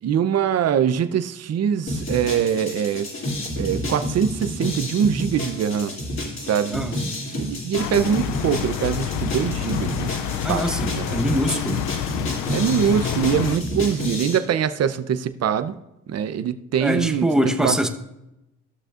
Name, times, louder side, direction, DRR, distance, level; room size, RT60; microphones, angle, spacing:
voice 1, 0.0-3.1 3.6-5.9 6.4-7.0 7.3-11.4 12.5-15.7 16.1-17.8, right 8 dB, 55° right, 11 dB, 0.7 m, -23 dB
sound 1, 1.9-14.4, left 1 dB, 40° left, 2.9 m, -30 dB
sound 2, 7.8-13.6, left 11 dB, 80° left, 0.5 m, -28 dB
voice 2, 10.4-11.8 16.8-17.9, equal, ahead, 5 dB, 1.0 m, -23 dB
14.5 x 6.5 x 2.5 m, 0.90 s
cardioid pair, 90°, 30 cm